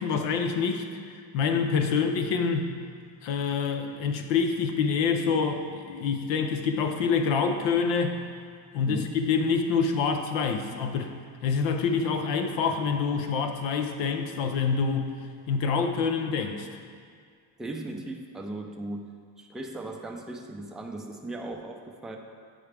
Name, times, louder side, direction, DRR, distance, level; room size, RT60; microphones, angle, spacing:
voice 1, 0.0-2.7 3.2-8.2 8.7-11.1 11.4-15.1 15.5-16.7, left 5 dB, 90° left, 5 dB, 0.7 m, -26 dB
voice 2, 8.9-9.2 17.6-19.1 19.4-22.2, right 2 dB, ahead, 1 dB, 0.4 m, -37 dB
8.9 x 4.7 x 3.3 m, 2.1 s
cardioid pair, 115°, 43 cm